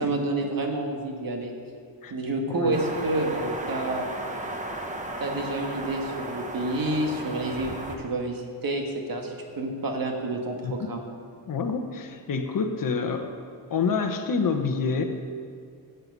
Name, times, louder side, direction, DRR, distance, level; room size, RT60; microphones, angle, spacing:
voice 1, 0.0-1.5 2.1-4.1 5.2-7.7 8.0-11.0, right 2 dB, 50° right, 2 dB, 1.8 m, -29 dB
sound 1, 2.7-8.0, right 1 dB, 15° right, 1.1 m, -35 dB
voice 2, 11.5-13.4 13.7-15.0, left 5 dB, 50° left, 4 dB, 1.1 m, -27 dB
15.5 x 7.7 x 5.5 m, 2.3 s
wide cardioid pair, 150°, 44 cm